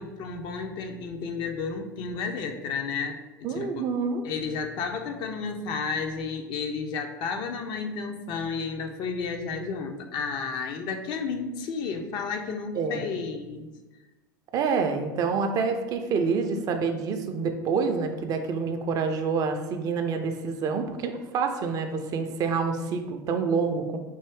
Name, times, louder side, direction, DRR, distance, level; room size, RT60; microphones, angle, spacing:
voice 1, 0.0-3.9 4.2-13.7, left 5 dB, 45° left, 5 dB, 0.5 m, -32 dB
voice 2, 3.4-4.2 12.7-13.0 14.5-24.0, right 5 dB, 35° right, 6 dB, 0.4 m, -27 dB
4.5 x 2.5 x 3.4 m, 1.2 s
figure-of-eight pair, 75°, 11 cm